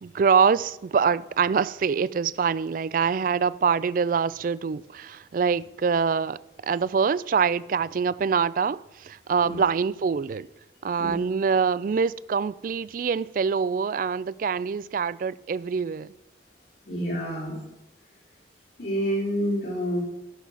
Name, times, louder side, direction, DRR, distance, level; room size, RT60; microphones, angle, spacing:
voice 1, 0.0-6.4 6.6-10.5 10.8-16.1, right 6 dB, 50° right, 0.3 m, -25 dB
voice 2, 16.8-17.6 18.8-20.0, equal, 70° left, 4.4 m, -28 dB
17.5 x 6.1 x 4.1 m
head